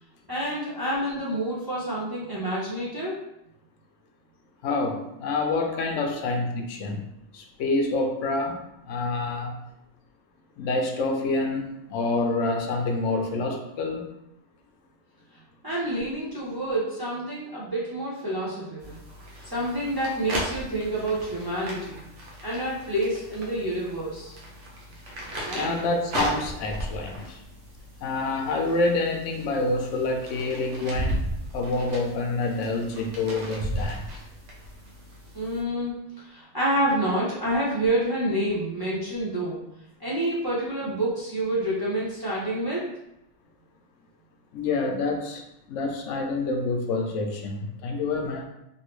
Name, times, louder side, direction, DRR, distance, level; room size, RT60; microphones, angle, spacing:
voice 1, 0.3-3.2 15.6-19.0 19.4-22.0 22.4-24.3 25.4-25.7 35.3-35.9 36.2-39.6 40.0-42.9, right 1 dB, 25° right, -7 dB, 0.5 m, -28 dB
voice 2, 4.6-7.1 7.3-9.6 10.6-14.1 25.5-27.4 28.0-31.3 31.5-34.0 44.5-45.4 45.7-48.4, left 3 dB, 80° left, 4 dB, 0.9 m, -27 dB
sound 1, 18.8-35.6, equal, 75° right, 1.1 m, -36 dB
3.2 x 2.6 x 3.0 m, 0.84 s
omnidirectional pair, 1.2 m